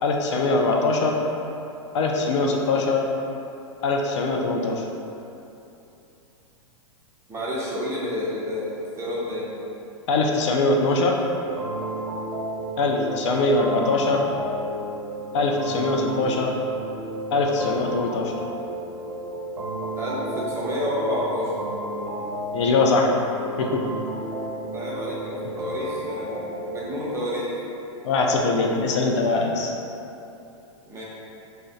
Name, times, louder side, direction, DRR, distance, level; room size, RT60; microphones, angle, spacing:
voice 1, 0.0-1.1 1.9-3.0 3.8-4.9 10.1-11.2 12.8-14.2 15.3-16.5 17.3-18.3 22.5-23.1 23.6-23.8 28.0-29.7, left 3 dB, 65° left, 0 dB, 0.4 m, -22 dB
voice 2, 7.3-9.5 20.0-21.5 24.6-27.5 30.9-31.0, left 1 dB, 15° right, -7 dB, 0.7 m, -29 dB
sound 1, 11.3-27.2, right 1 dB, 75° right, 0.5 m, -33 dB
2.4 x 2.1 x 3.9 m, 2.8 s
hypercardioid pair, 115°, 17 cm